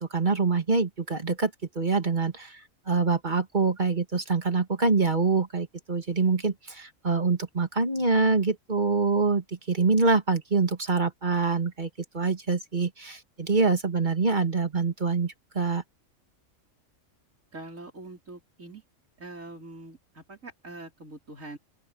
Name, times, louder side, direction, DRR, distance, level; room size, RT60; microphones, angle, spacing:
voice 1, 0.1-1.5 1.8-2.6 2.9-11.9 12.1-15.8, right 4 dB, 35° right, 2.3 m, -25 dB
voice 2, 17.5-18.8 19.2-21.6, right 2 dB, 75° right, 5.3 m, -43 dB
open air
omnidirectional pair, 1.4 m